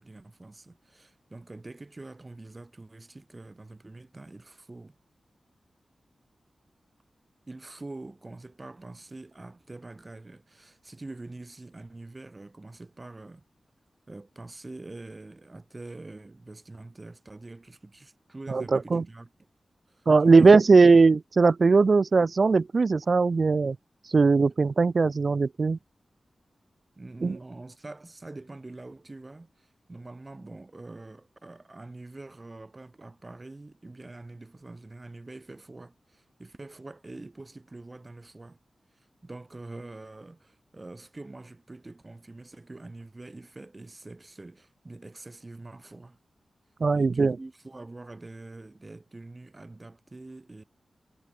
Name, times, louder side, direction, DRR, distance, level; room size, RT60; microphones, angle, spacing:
voice 1, 0.0-5.0 7.5-13.4 14.1-19.3 19.9-20.6 27.0-38.6 38.9-46.2 46.9-50.6, right 2 dB, 30° right, 6.2 m, -45 dB
voice 2, 18.5-19.0 20.1-23.8 24.1-25.8 27.2-27.4 46.8-47.4, right 4 dB, 50° right, 0.4 m, -19 dB
wide cardioid pair, 95°, 0 cm